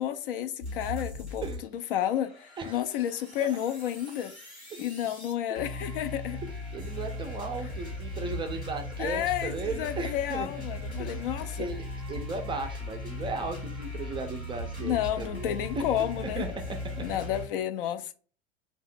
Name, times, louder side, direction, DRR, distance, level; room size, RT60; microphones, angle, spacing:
voice 1, 0.0-1.5 1.7-4.3 4.8-6.4 9.0-11.7 14.8-16.4 17.0-18.1, left 11 dB, 55° left, 0.5 m, -31 dB
sound 1, 0.6-1.6 1.9-17.5, left 2 dB, 90° left, 1.1 m, -38 dB
voice 2, 6.7-10.6 11.0-15.9 16.2-17.1, right 3 dB, 15° right, 0.4 m, -36 dB
2.7 x 2.2 x 4.1 m
figure-of-eight pair, 75°, 32 cm